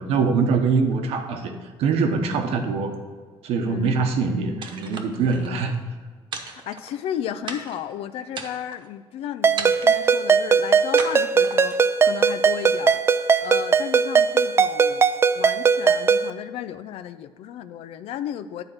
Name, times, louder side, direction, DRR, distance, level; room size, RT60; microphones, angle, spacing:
voice 1, 0.0-1.5 1.8-2.9 3.4-5.7, right 4 dB, 85° right, 6 dB, 1.0 m, -23 dB
voice 2, 3.6-4.0 5.4-5.8 6.7-15.1 15.4-18.6, left 10 dB, 80° left, 12 dB, 0.4 m, -34 dB
sound 1, 4.6-5.5 6.3-7.1 7.5-7.9 8.3-8.9 9.6-10.1 11.0-11.9, right 5 dB, 50° right, 1.0 m, -35 dB
Ringtone, 9.4-16.3, right 5 dB, 25° right, 0.3 m, -19 dB
9.7 x 4.4 x 6.4 m, 1.5 s
cardioid pair, 120°, 10 cm